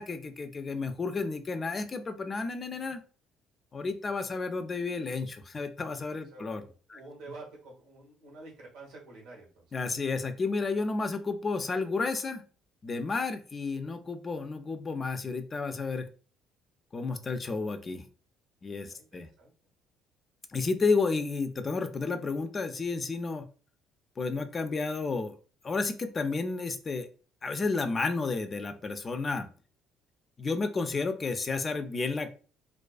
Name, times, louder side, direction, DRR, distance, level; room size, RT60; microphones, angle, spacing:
voice 1, 0.0-3.0 3.7-6.6 6.9-7.0 9.7-12.4 12.8-16.1 16.9-18.0 18.6-19.3 20.5-23.4 24.2-25.4 25.6-27.1 27.4-29.5 30.4-32.3, left 4 dB, 35° left, 8 dB, 0.4 m, -31 dB
voice 2, 6.3-9.7 18.8-19.5, right 3 dB, 80° right, -1 dB, 1.1 m, -49 dB
2.4 x 2.3 x 2.3 m, 0.38 s
supercardioid pair, 85°, 0 cm